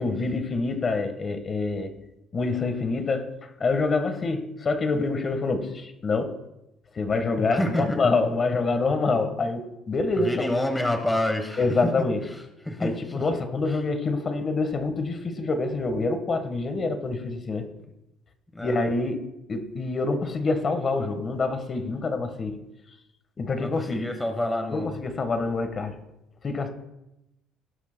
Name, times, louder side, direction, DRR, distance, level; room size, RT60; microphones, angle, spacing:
voice 1, 0.0-1.9 2.3-6.4 6.9-10.5 11.6-12.2 12.8-17.7 18.6-19.2 19.5-22.6 23.4-23.9 24.7-26.0 26.4-26.7, left 3 dB, 30° left, 8 dB, 1.3 m, -26 dB
voice 2, 7.5-8.0 10.2-11.9 12.2-13.2 13.7-13.8 18.5-18.9 23.5-24.9, left 1 dB, 10° left, 4 dB, 1.1 m, -28 dB
17.5 x 11.5 x 2.2 m, 0.90 s
cardioid pair, 130°, 0 cm